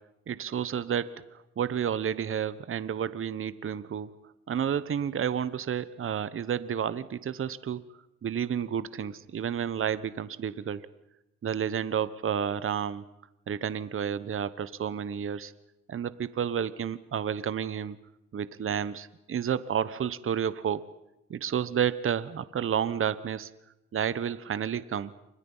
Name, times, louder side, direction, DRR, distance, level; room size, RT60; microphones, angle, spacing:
voice 1, 0.3-4.1 4.5-7.8 8.2-10.8 11.4-13.0 13.5-15.5 15.9-18.0 18.3-20.9 21.3-23.5 23.9-25.1, right 8 dB, 45° right, 16 dB, 1.1 m, -31 dB
28.5 x 25.5 x 5.6 m, 0.88 s
cardioid pair, 90°, 30 cm